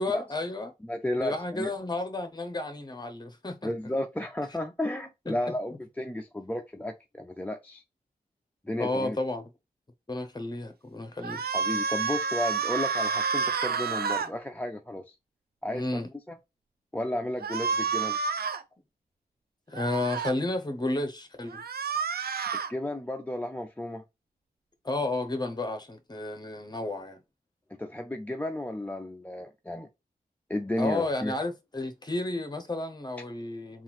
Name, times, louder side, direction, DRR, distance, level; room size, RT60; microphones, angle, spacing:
voice 1, 0.0-0.7 1.2-3.7 5.3-5.4 8.8-9.4 10.1-11.4 15.7-16.1 19.7-21.6 24.8-27.2 30.8-33.8, left 2 dB, 25° left, 0.8 m, -32 dB
voice 2, 0.8-1.7 3.6-7.8 8.6-9.2 11.5-15.1 15.6-16.0 16.3-16.4 16.9-18.2 22.7-24.0 27.7-29.9 30.5-31.4, left 1 dB, 10° left, 0.4 m, -33 dB
Power up yells, 11.2-14.3 17.4-18.6 19.7-20.3 21.5-22.7, right 5 dB, 75° right, 0.5 m, -29 dB
3.7 x 2.4 x 4.3 m
wide cardioid pair, 100°, 16 cm